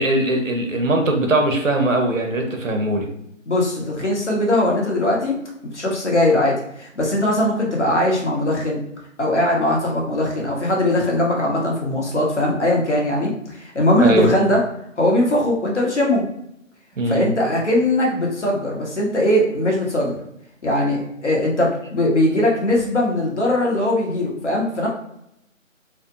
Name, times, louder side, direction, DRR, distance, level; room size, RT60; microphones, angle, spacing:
voice 1, 0.0-3.1 14.0-14.3 17.0-17.3, right 1 dB, 70° right, 4 dB, 0.7 m, -20 dB
voice 2, 3.5-5.3 5.7-8.8 9.2-14.6 15.0-16.2 17.1-20.2 20.6-24.9, left 1 dB, 60° left, -2 dB, 0.9 m, -20 dB
2.6 x 2.1 x 2.5 m, 0.78 s
figure-of-eight pair, 175°, 40 cm